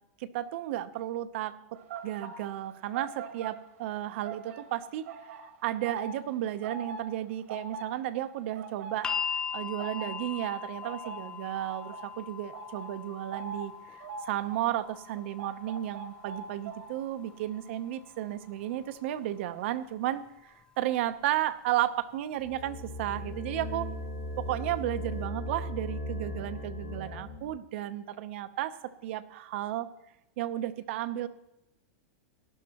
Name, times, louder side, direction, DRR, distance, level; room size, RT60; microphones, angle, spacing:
voice 1, 0.2-23.9 24.4-29.9 30.4-31.3, right 13 dB, 55° right, 12 dB, 0.8 m, -33 dB
sound 1, 1.7-19.1 19.4-19.7, right 5 dB, 70° right, 1.7 m, -44 dB
sound 2, 9.0-21.1 22.2-22.3, left 7 dB, 10° left, 0.3 m, -41 dB
sound 3, 22.4-27.5, equal, 90° left, 3.2 m, -37 dB
18.0 x 11.5 x 3.0 m, 0.90 s
supercardioid pair, 175°, 8 cm